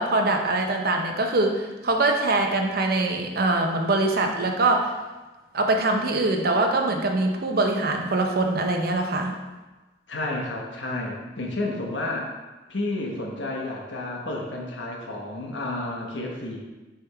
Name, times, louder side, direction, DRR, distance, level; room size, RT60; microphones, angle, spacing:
voice 1, 0.0-4.9 5.5-9.3, right 2 dB, 55° right, 3 dB, 0.8 m, -23 dB
voice 2, 10.1-12.3 12.7-16.6, left 2 dB, 85° left, -1 dB, 1.2 m, -31 dB
6.6 x 3.6 x 4.6 m, 1.2 s
head